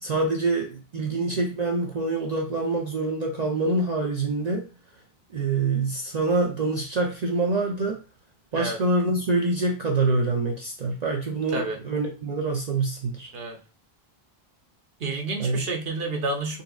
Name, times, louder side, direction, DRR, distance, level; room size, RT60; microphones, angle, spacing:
voice 1, 0.0-4.7 5.3-8.0 8.5-13.3 15.4-15.6, right 3 dB, 50° right, 1 dB, 0.6 m, -25 dB
voice 2, 15.0-16.6, right 3 dB, 70° right, 3 dB, 1.0 m, -29 dB
4.2 x 3.4 x 2.3 m, 0.34 s
omnidirectional pair, 1.0 m